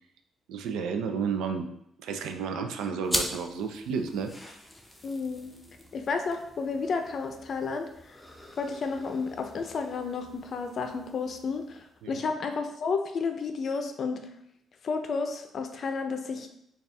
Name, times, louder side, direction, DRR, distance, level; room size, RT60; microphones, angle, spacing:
voice 1, 0.5-1.7 2.0-4.6 12.0-12.2, right 6 dB, 85° right, 6 dB, 0.4 m, -32 dB
sound 1, 3.0-12.0, left 1 dB, 10° left, 0.6 m, -40 dB
voice 2, 5.0-5.5 5.9-8.2 8.6-14.2 14.8-16.5, left 4 dB, 55° left, 6 dB, 0.5 m, -32 dB
4.1 x 2.3 x 3.4 m, 0.75 s
cardioid pair, 90°, 0 cm